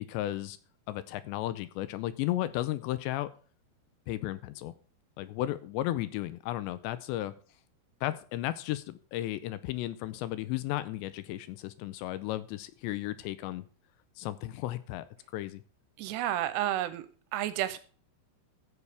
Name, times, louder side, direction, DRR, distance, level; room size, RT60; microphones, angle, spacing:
voice 1, 0.1-0.6 0.9-3.3 4.1-4.7 5.2-7.3 8.0-13.7 14.2-15.1 15.3-15.6, left 15 dB, 80° left, 14 dB, 2.7 m, -34 dB
voice 2, 16.0-17.0 17.3-17.8, right 12 dB, 80° right, 12 dB, 2.6 m, -30 dB
15.0 x 7.1 x 3.4 m, 0.40 s
omnidirectional pair, 5.3 m